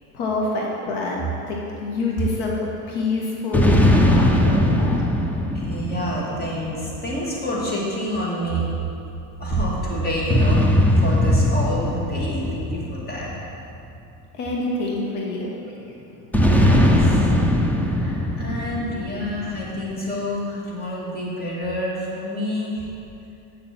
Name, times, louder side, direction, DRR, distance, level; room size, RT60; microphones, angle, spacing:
voice 1, 0.1-5.0 14.3-16.4, left 3 dB, 65° left, -2 dB, 1.6 m, -27 dB
sound 1, 3.5-7.2 10.3-14.0 16.3-19.8, left 1 dB, 5° left, 0.4 m, -20 dB
voice 2, 5.5-8.7 9.4-13.3 16.7-17.3 17.8-22.9, equal, 20° left, -5 dB, 2.4 m, -28 dB
8.5 x 7.2 x 6.0 m, 2.7 s
supercardioid pair, 130°, 45 cm